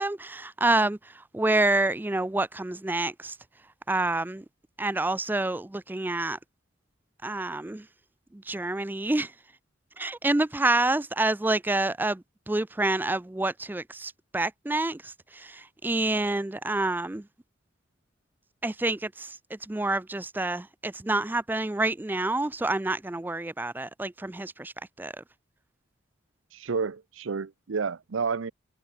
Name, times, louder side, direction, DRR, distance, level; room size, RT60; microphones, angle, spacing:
voice 1, 0.0-3.4 3.9-4.4 4.8-6.4 7.2-7.8 8.3-9.3 10.0-17.2 18.6-25.2, right 2 dB, 10° right, 0.3 m, -28 dB
voice 2, 26.5-28.5, right 5 dB, 70° right, 0.6 m, -30 dB
head